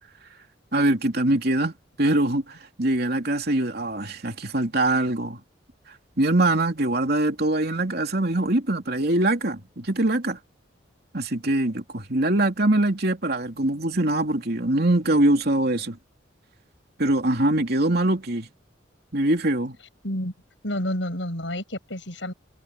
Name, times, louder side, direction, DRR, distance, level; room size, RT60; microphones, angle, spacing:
voice 1, 0.7-1.7 2.0-5.4 6.2-10.4 11.1-16.0 17.0-18.5 19.1-19.8, right 1 dB, 55° right, 3.2 m, -23 dB
voice 2, 20.6-22.3, left 1 dB, 75° left, 7.0 m, -29 dB
head